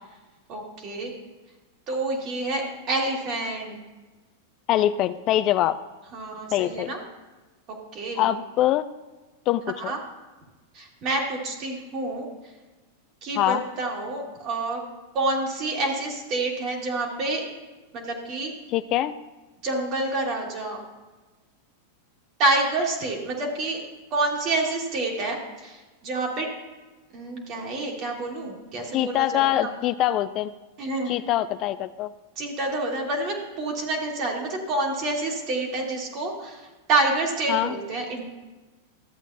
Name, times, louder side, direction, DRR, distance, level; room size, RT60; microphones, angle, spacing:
voice 1, 0.5-1.1 1.9-3.8 6.1-7.0 7.7-8.3 9.8-10.0 10.7-12.5 13.2-14.8 15.1-17.4 17.9-18.5 19.6-20.8 22.4-23.8 24.1-26.5 27.1-29.7 30.8-31.1 32.4-38.2, right 2 dB, 40° right, 0 dB, 2.3 m, -28 dB
voice 2, 4.7-5.7 6.5-6.9 8.2-8.9 9.5-9.9 13.4-13.6 18.7-19.1 28.9-30.5 31.1-32.1 37.5-37.7, left 13 dB, 40° left, 13 dB, 0.3 m, -23 dB
13.5 x 8.1 x 2.8 m, 1.2 s
hypercardioid pair, 125°, 0 cm